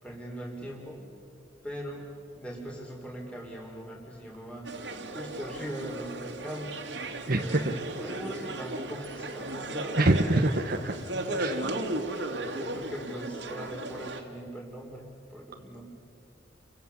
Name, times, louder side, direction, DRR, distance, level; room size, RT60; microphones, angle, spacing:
voice 1, 0.0-1.2 1.6-2.1 2.4-4.7 5.1-7.7 8.0-10.0 10.8-15.8, equal, 5° left, -1 dB, 3.7 m, -41 dB
sound 1, 4.6-14.2, right 1 dB, 70° right, 2.5 m, -36 dB
voice 2, 7.3-7.8 10.0-10.9 11.4-11.6, right 2 dB, 55° right, 3 dB, 1.2 m, -25 dB
30.0 x 24.5 x 7.0 m, 2.5 s
head